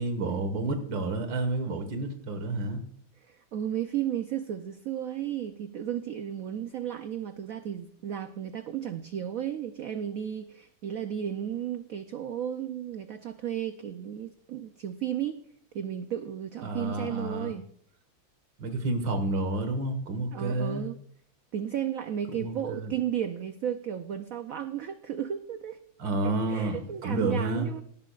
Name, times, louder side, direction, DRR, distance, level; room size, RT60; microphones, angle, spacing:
voice 1, 0.0-2.8 16.6-17.5 18.6-20.9 22.4-22.9 26.0-27.7, right 2 dB, 65° right, 7 dB, 2.2 m, -30 dB
voice 2, 3.3-15.4 15.7-17.7 20.3-21.0 21.5-25.8 26.2-27.8, right 10 dB, 90° right, 9 dB, 0.7 m, -34 dB
18.0 x 11.0 x 2.4 m, 0.62 s
omnidirectional pair, 2.2 m